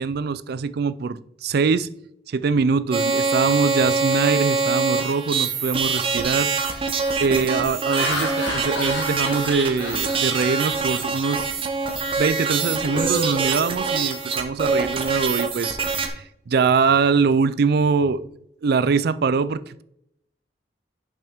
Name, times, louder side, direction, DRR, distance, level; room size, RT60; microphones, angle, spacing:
voice 1, 0.0-1.9 2.3-6.8 7.2-11.5 12.2-15.8 16.0-18.3 18.6-19.8, right 5 dB, 60° right, 0.4 m, -23 dB
sound 1, 2.9-16.1, right 4 dB, 30° right, 0.9 m, -24 dB
Laughter, 6.0-6.1 6.6-6.9 7.6-11.4 11.8-12.1 12.4-14.4, left 1 dB, 75° left, 1.8 m, -32 dB
9.0 x 5.7 x 3.5 m
head